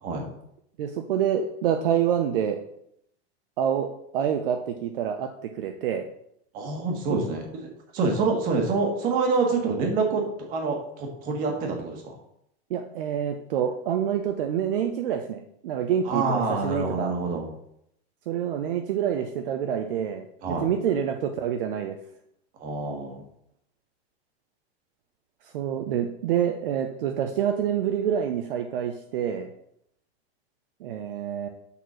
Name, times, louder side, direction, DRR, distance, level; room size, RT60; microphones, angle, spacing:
voice 1, 0.8-2.6 3.6-3.9 4.1-6.1 12.7-17.1 18.3-22.0 25.5-29.5 30.8-31.5, right 9 dB, 55° right, 5 dB, 0.7 m, -27 dB
voice 2, 6.5-7.4 7.9-10.2 10.5-12.0 16.0-17.5 20.4-20.7 22.6-23.2, right 4 dB, 25° right, 2 dB, 1.5 m, -26 dB
6.9 x 4.4 x 6.2 m, 0.74 s
supercardioid pair, 170°, 33 cm